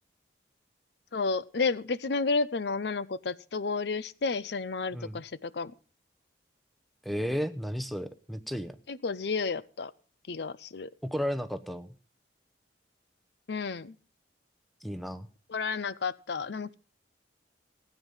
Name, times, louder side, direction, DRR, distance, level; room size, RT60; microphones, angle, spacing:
voice 1, 1.1-5.7 8.9-9.9 10.3-10.9 13.5-14.0 15.5-16.7, left 4 dB, 65° left, 17 dB, 0.5 m, -31 dB
voice 2, 7.0-8.8 11.0-11.9 14.8-15.3, equal, ahead, 11 dB, 0.8 m, -33 dB
16.5 x 9.2 x 5.5 m, 0.39 s
head